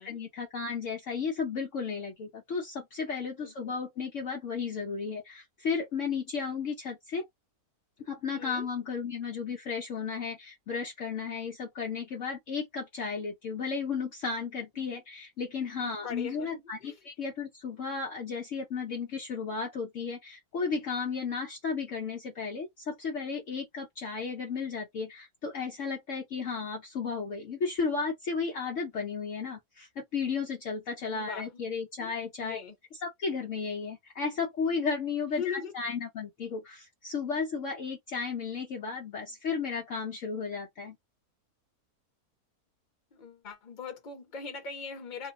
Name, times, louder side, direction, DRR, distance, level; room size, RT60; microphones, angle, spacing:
voice 1, 0.0-7.3 8.0-32.6 32.9-41.0, left 5 dB, 60° left, 1.0 m, -34 dB
voice 2, 8.3-8.7 14.9-15.0 15.8-17.0 31.0-31.7 32.0-32.1 32.4-32.8 35.3-35.7 39.3-39.4 43.1-45.3, left 6 dB, 35° left, 1.1 m, -40 dB
2.7 x 2.3 x 4.0 m
omnidirectional pair, 1.6 m